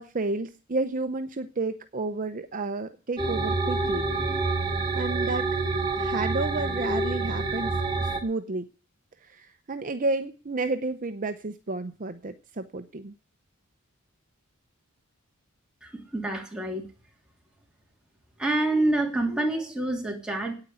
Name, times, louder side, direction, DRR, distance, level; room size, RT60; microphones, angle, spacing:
voice 1, 0.0-4.1 4.9-5.5 6.0-8.7 9.2-13.1, right 3 dB, 40° right, 8 dB, 0.7 m, -31 dB
sound 1, 3.2-8.2, right 3 dB, 25° right, 2.1 m, -27 dB
voice 2, 15.8-16.8 18.4-20.5, right 2 dB, 5° right, -1 dB, 3.0 m, -27 dB
9.8 x 9.0 x 9.4 m, 0.37 s
head